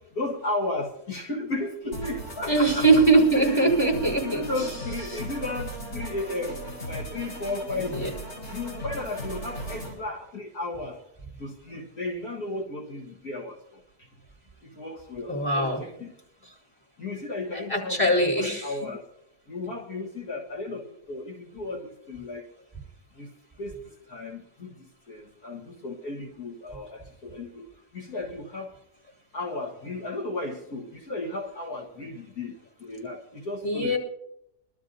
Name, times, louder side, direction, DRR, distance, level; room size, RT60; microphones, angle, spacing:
voice 1, 0.2-2.9 3.3-3.7 4.2-8.2 8.5-11.0 11.4-13.6 14.7-16.1 17.0-19.0 19.5-22.4 23.2-23.3 23.6-24.8 25.1-27.7 27.9-28.7 29.3-34.0, left 2 dB, 60° left, -2 dB, 2.0 m, -34 dB
sound 1, 1.9-9.9, right 1 dB, 90° left, 4.5 m, -37 dB
voice 2, 2.5-4.4 5.1-5.2 7.8-8.1 15.3-15.8 17.7-18.7 33.6-34.0, right 2 dB, 5° left, -2 dB, 4.5 m, -21 dB
24.0 x 12.5 x 2.7 m, 0.78 s
omnidirectional pair, 1.8 m